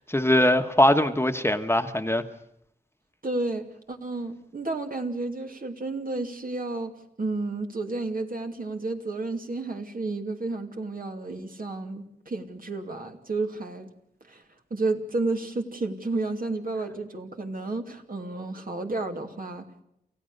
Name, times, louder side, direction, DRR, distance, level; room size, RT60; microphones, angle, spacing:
voice 1, 0.1-2.2, left 1 dB, 15° left, 7 dB, 1.4 m, -21 dB
voice 2, 3.2-6.9 7.2-13.9 14.3-14.4 14.7-19.8, right 3 dB, 60° right, 3 dB, 2.8 m, -31 dB
28.5 x 15.5 x 6.7 m, 0.76 s
cardioid pair, 55°, 17 cm